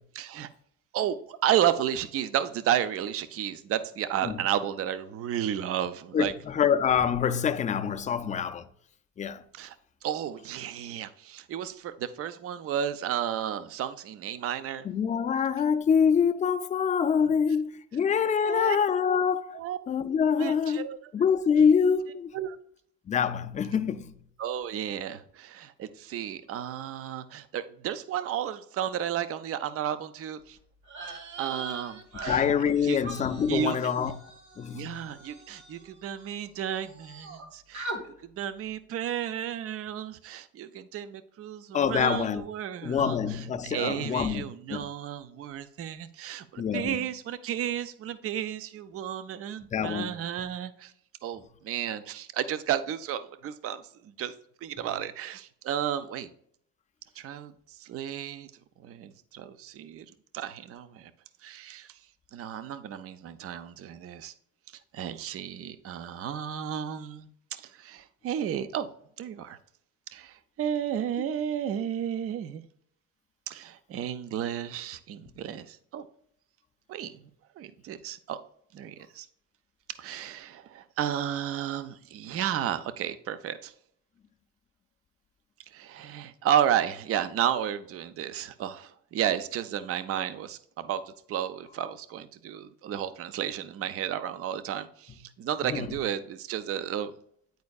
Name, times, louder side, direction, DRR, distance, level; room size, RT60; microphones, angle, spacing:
voice 1, 0.1-0.5 0.9-6.3 9.5-9.8 10.0-14.9 18.4-18.8 19.5-19.8 20.4-21.0 22.3-22.6 24.4-30.6 31.4-32.4 32.8-33.0 33.5-33.8 34.7-50.9 51.2-54.3 54.6-56.3 57.2-58.5 58.8-60.1 60.3-61.1 61.4-61.9 62.3-64.3 64.9-68.9 69.2-69.6 70.1-72.6 73.5-76.1 76.9-77.2 77.6-78.4 78.7-79.3 80.0-83.7 85.7-91.0 91.3-97.1, right 10 dB, 45° right, 0.5 m, -32 dB
voice 2, 6.1-8.7 9.2-9.4 14.8-20.9 21.1-22.3 23.1-24.1 32.2-34.2 34.6-35.1 41.7-42.4 42.8-44.4 44.7-44.9 46.6-47.0 49.7-50.1 50.4-50.5 54.8-54.9 75.3-75.4 95.1-95.2 95.6-96.0, left 7 dB, 25° left, 0.4 m, -26 dB
sound 1, 30.8-36.5 36.7-37.4 37.7-38.0, right 3 dB, 60° right, 1.4 m, -41 dB
9.4 x 4.3 x 2.3 m
cardioid pair, 110°, 33 cm